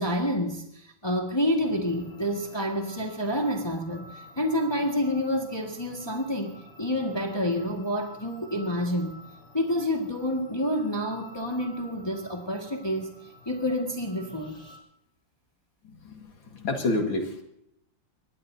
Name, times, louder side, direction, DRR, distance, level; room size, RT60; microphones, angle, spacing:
voice 1, 0.0-9.2 9.5-13.1 13.4-14.5, equal, 15° left, 1 dB, 1.8 m, -28 dB
sound 1, 1.6-14.8, left 1 dB, 40° left, 3.2 m, -51 dB
voice 2, 15.8-17.4, left 2 dB, 90° left, 3 dB, 2.7 m, -29 dB
24.0 x 20.0 x 2.8 m, 0.78 s
omnidirectional pair, 2.1 m